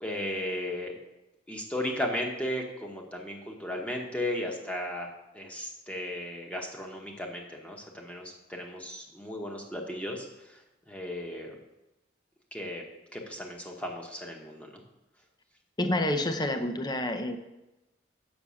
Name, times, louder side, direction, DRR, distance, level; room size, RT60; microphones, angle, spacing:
voice 1, 0.0-1.0 1.5-5.1 5.3-10.6 10.9-11.5 12.5-12.8 13.1-14.8, left 1 dB, 5° left, 0 dB, 1.0 m, -35 dB
voice 2, 15.8-17.4, left 1 dB, 20° left, 7 dB, 0.6 m, -28 dB
7.0 x 6.1 x 6.2 m, 0.98 s
head